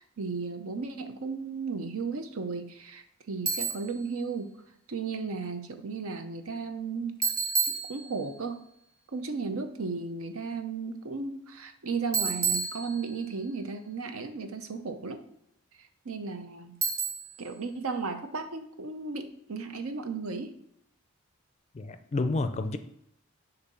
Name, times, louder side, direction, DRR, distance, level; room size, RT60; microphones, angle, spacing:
voice 1, 0.0-4.6 4.9-7.2 7.7-8.6 9.1-15.2 15.8-16.8 17.4-20.6, right 4 dB, 70° right, 7 dB, 0.7 m, -35 dB
Bicycle, 3.5-4.0 7.2-8.4 12.1-13.4 16.8-17.5, right 5 dB, 40° right, 1.2 m, -30 dB
voice 2, 21.7-22.8, left 2 dB, 30° left, 9 dB, 0.4 m, -29 dB
6.8 x 2.7 x 5.5 m, 0.76 s
head